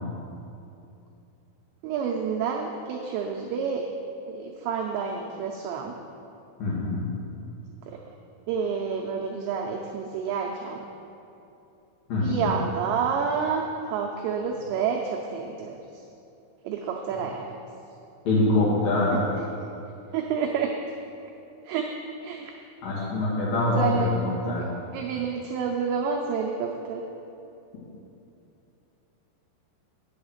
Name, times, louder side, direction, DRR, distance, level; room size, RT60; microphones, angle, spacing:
voice 1, 1.8-3.8 4.3-6.0 7.9-8.0 8.5-10.8 12.2-15.8 16.6-17.5 20.1-20.7 21.7-21.9 22.2-22.5 23.5-27.0, right 6 dB, 85° right, 0 dB, 2.5 m, -29 dB
voice 2, 6.6-7.0 12.1-12.5 18.2-19.2 22.8-24.1 24.5-24.7, left 2 dB, 55° left, -8 dB, 3.3 m, -24 dB
8.8 x 7.6 x 6.5 m, 2.8 s
omnidirectional pair, 5.8 m